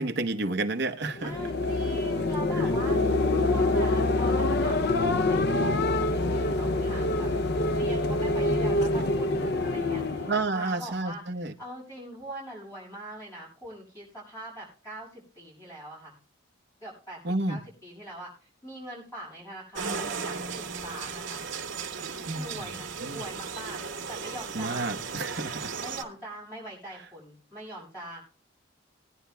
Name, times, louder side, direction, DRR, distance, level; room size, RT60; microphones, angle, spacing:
voice 1, 0.0-1.3 10.3-11.5 17.2-17.6 22.3-22.6 23.0-23.2 24.5-25.7, right 2 dB, 55° right, 1.0 m, -30 dB
sound 1, 1.1-10.5, left 2 dB, 50° left, 0.5 m, -26 dB
voice 2, 1.2-7.3 7.7-16.2 16.8-17.2 17.5-21.4 22.3-25.0 25.8-28.2, right 1 dB, 15° left, 6.3 m, -42 dB
sound 2, 19.8-26.0, right 5 dB, 70° right, 1.8 m, -36 dB
21.0 x 10.5 x 2.3 m
head